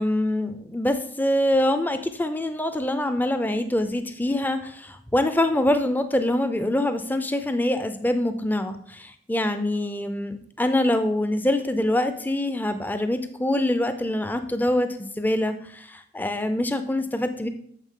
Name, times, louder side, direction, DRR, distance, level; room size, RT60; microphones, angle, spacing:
voice 1, 0.0-17.5, left 1 dB, 10° left, 9 dB, 0.5 m, -25 dB
9.0 x 6.8 x 3.7 m, 0.65 s
head